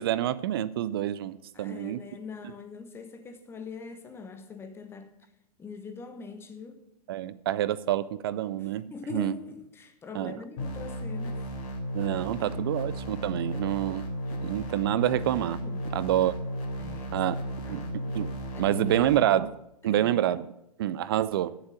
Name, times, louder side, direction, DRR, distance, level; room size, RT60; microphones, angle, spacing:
voice 1, 0.0-2.0 7.1-8.9 9.1-9.3 10.2-10.3 11.9-14.1 14.4-15.6 15.9-16.3 17.1-19.5 19.8-20.5 20.8-21.5, right 12 dB, 35° right, 0.4 m, -27 dB
voice 2, 1.5-5.1 5.6-6.8 8.6-11.5 12.5-12.7 13.5-13.6 14.3-14.6 15.6-15.9 16.8-18.0 18.5-19.1 19.8-20.3, left 5 dB, 10° left, 1.0 m, -43 dB
sound 1, 10.6-19.2, equal, 45° left, 3.2 m, -34 dB
8.7 x 7.1 x 8.6 m
figure-of-eight pair, 110°, 20 cm